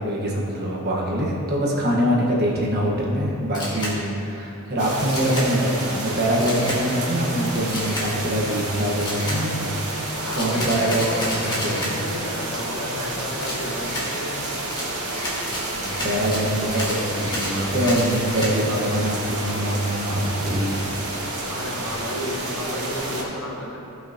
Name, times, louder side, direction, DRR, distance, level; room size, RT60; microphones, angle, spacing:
voice 1, 0.0-11.3 11.6-11.9 15.7-20.8, equal, 45° right, -3 dB, 1.4 m, -24 dB
Camera, 3.5-3.9 5.1-5.5 6.4-6.8 7.7-8.1 9.0-9.4 10.3-11.9 13.4-14.1 14.7-18.5, left 1 dB, 20° left, 1.6 m, -31 dB
sound 1, 4.8-23.2, right 2 dB, 75° right, 2.1 m, -30 dB
voice 2, 10.2-14.4 21.5-23.8, left 1 dB, 65° left, -4 dB, 1.7 m, -32 dB
15.5 x 5.7 x 2.9 m, 2.7 s
head